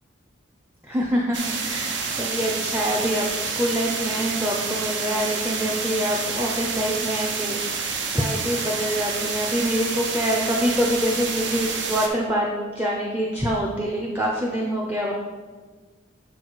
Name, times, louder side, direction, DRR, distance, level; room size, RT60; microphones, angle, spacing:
voice 1, 0.8-15.1, equal, 10° right, -3 dB, 0.5 m, -25 dB
sound 1, 1.3-12.1, right 5 dB, 70° right, 0.7 m, -28 dB
6.5 x 4.1 x 4.6 m, 1.4 s
head